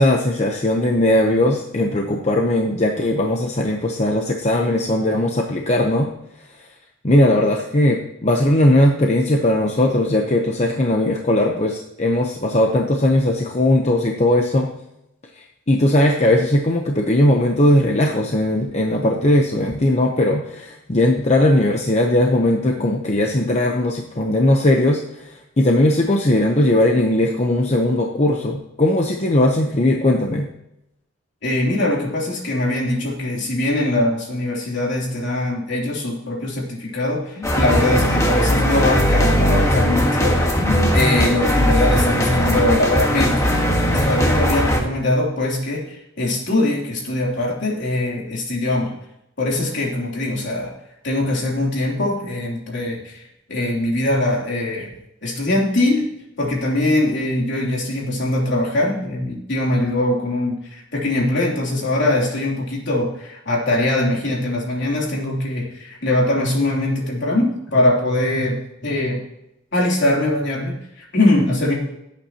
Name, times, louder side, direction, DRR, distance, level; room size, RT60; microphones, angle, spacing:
voice 1, 0.0-6.1 7.0-14.7 15.4-30.5, left 1 dB, 35° left, 2 dB, 0.9 m, -18 dB
voice 2, 31.4-43.4 43.8-48.9 49.4-50.7 51.0-53.2 53.5-54.9 55.2-56.1 56.4-68.5 68.8-69.2 69.7-71.7, left 1 dB, 65° left, -3 dB, 3.3 m, -22 dB
sound 1, 37.4-44.8, equal, 15° left, 1.5 m, -18 dB
17.5 x 8.6 x 3.0 m, 0.83 s
head